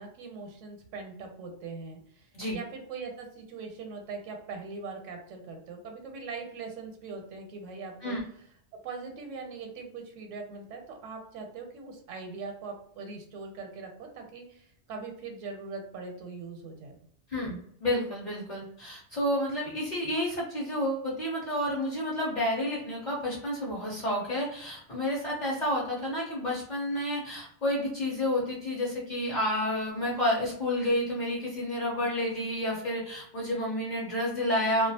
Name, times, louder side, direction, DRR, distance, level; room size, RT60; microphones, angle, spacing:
voice 1, 0.0-8.2 8.8-17.0, right 4 dB, 80° right, 3 dB, 0.9 m, -41 dB
voice 2, 17.3-34.9, left 1 dB, 45° left, -6 dB, 0.7 m, -30 dB
2.3 x 2.2 x 2.7 m, 0.66 s
omnidirectional pair, 1.3 m